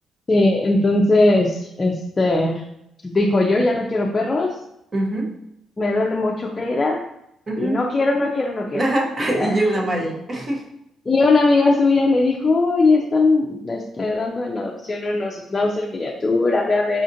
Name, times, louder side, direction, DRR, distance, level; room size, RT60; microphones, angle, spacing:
voice 1, 0.3-2.6 3.0-4.6 5.8-7.0 7.6-8.8 9.3-9.6 11.1-17.0, left 2 dB, 30° left, -1 dB, 0.4 m, -19 dB
voice 2, 4.9-5.3 7.5-7.8 8.7-10.7, right 1 dB, 35° right, 0 dB, 0.9 m, -23 dB
4.9 x 2.4 x 2.6 m, 0.80 s
cardioid pair, 90°, 0 cm